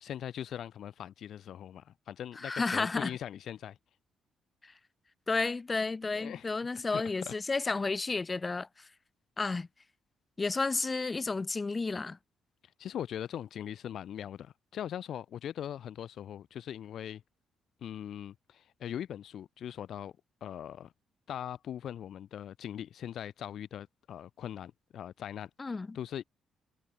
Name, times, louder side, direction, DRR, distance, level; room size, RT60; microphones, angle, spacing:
voice 1, 0.0-3.8 6.1-6.5 6.9-7.3 12.8-17.2 17.8-20.1 20.4-20.9 21.3-26.2, left 10 dB, 65° left, 0.8 m, -41 dB
voice 2, 2.4-3.1 4.6-4.7 5.3-8.9 9.4-9.7 10.4-12.2 25.6-26.0, left 3 dB, 25° left, 0.9 m, -32 dB
cardioid pair, 90°, 0 cm